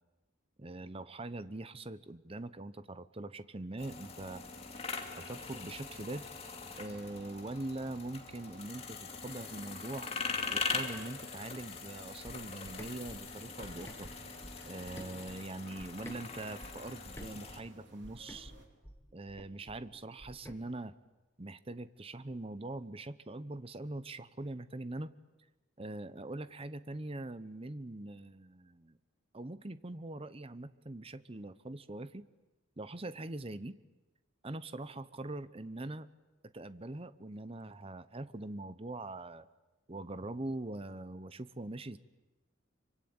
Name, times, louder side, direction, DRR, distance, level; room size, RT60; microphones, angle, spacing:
voice 1, 0.6-4.4 5.2-6.3 6.8-10.1 10.5-14.1 14.7-18.5 19.1-20.9 21.4-25.1 25.8-29.0 29.3-32.3 32.8-33.7 34.4-36.1 36.4-39.5 39.9-42.0, right 2 dB, 30° right, 14 dB, 0.8 m, -42 dB
sound 1, 3.8-17.6, left 4 dB, 30° left, 2.5 m, -42 dB
sound 2, 4.4-18.7, right 1 dB, 60° right, 4.3 m, -60 dB
sound 3, 12.2-16.2 16.6-20.6, equal, 15° left, 2.2 m, -51 dB
25.5 x 24.5 x 8.8 m, 1.1 s
head